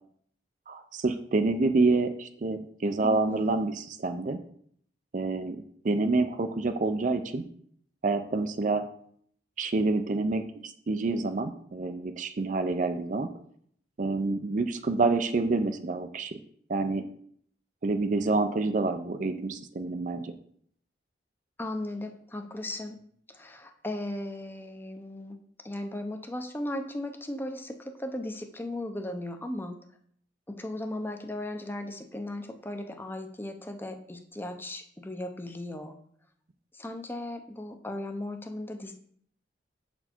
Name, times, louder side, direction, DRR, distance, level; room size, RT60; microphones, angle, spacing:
voice 1, 0.7-4.4 5.1-5.6 5.8-7.4 8.0-8.8 9.6-13.3 14.0-16.4 16.7-17.0 17.8-20.3, right 3 dB, 45° right, 9 dB, 0.5 m, -27 dB
voice 2, 3.0-3.5 21.6-23.0 23.3-25.4 25.6-29.8 30.5-35.9 36.7-38.9, left 1 dB, 10° left, 5 dB, 0.6 m, -37 dB
6.8 x 4.3 x 4.4 m, 0.62 s
head